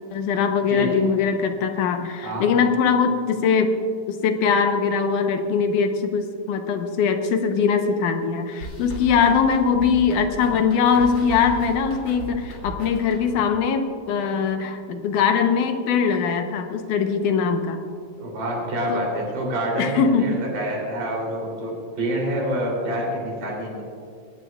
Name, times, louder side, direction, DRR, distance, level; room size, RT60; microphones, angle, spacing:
voice 1, 0.1-3.8 4.1-17.8 18.9-19.1 19.8-20.4, left 6 dB, 75° left, 6 dB, 2.4 m, -21 dB
voice 2, 0.7-1.0 2.2-2.5 18.2-23.8, right 1 dB, 75° right, -2 dB, 4.9 m, -27 dB
sound 1, 8.6-13.6, left 1 dB, 35° left, 3.1 m, -36 dB
20.0 x 17.0 x 2.4 m, 2.4 s
omnidirectional pair, 3.7 m